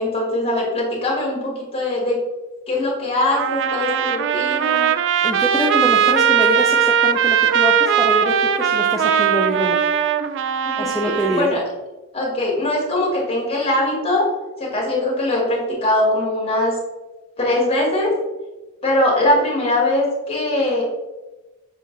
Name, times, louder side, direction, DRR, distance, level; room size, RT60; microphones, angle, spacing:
voice 1, 0.0-2.2 2.7-4.9 10.8-11.6 12.1-14.3 14.6-16.8 17.4-18.1 18.8-20.8, left 1 dB, 25° left, -4 dB, 1.8 m, -21 dB
Trumpet, 3.3-11.5, right 8 dB, 55° right, 0.3 m, -19 dB
voice 2, 5.2-9.8 10.8-11.5, left 1 dB, ahead, -3 dB, 0.5 m, -24 dB
6.7 x 3.8 x 3.8 m, 1.1 s
head